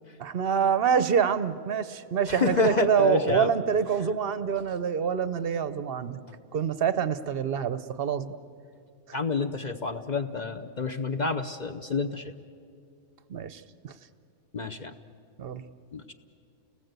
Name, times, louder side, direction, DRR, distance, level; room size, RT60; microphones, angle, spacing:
voice 1, 0.2-6.2 6.5-8.4 13.3-13.9 15.4-15.6, right 7 dB, 50° right, 13 dB, 0.8 m, -26 dB
voice 2, 2.3-3.5 9.1-12.3 14.5-14.9 15.9-16.1, left 4 dB, 40° left, 7 dB, 0.6 m, -29 dB
30.0 x 19.0 x 8.1 m, 2.4 s
omnidirectional pair, 1.6 m